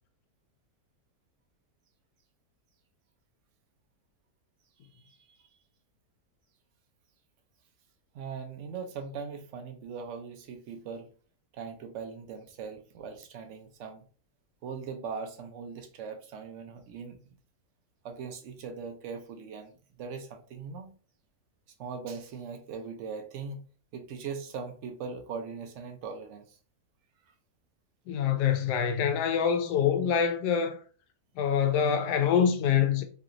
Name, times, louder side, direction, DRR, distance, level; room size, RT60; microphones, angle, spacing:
voice 1, 5.0-5.4 8.1-11.1 11.5-14.0 14.6-17.2 18.0-20.9 21.8-23.6 23.9-26.4, right 5 dB, 70° right, 0.7 m, -40 dB
voice 2, 28.1-30.8 31.4-33.0, left 8 dB, 90° left, 1.2 m, -25 dB
3.2 x 2.8 x 2.5 m
omnidirectional pair, 1.7 m